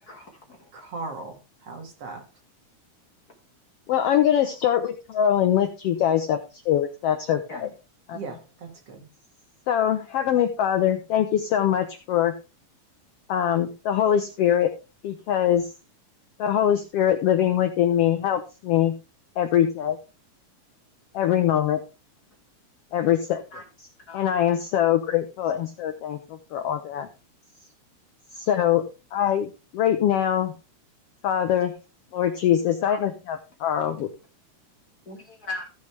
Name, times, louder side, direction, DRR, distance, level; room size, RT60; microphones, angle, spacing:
voice 1, 0.0-0.7 7.5-7.6 23.5-24.2 27.5-27.7 32.9-33.0 35.0-35.7, left 2 dB, 40° left, 1.6 m, -39 dB
voice 2, 0.7-2.2 8.1-9.1, right 3 dB, 50° right, 2.7 m, -38 dB
voice 3, 3.9-7.7 8.1-8.2 9.7-12.3 13.3-14.7 15.0-15.7 16.4-18.9 19.4-20.0 21.1-21.8 22.9-23.4 24.1-27.1 28.3-28.8 29.1-30.5 31.2-31.7 32.1-34.1, left 10 dB, 85° left, 1.3 m, -23 dB
14.5 x 6.5 x 3.3 m
omnidirectional pair, 3.6 m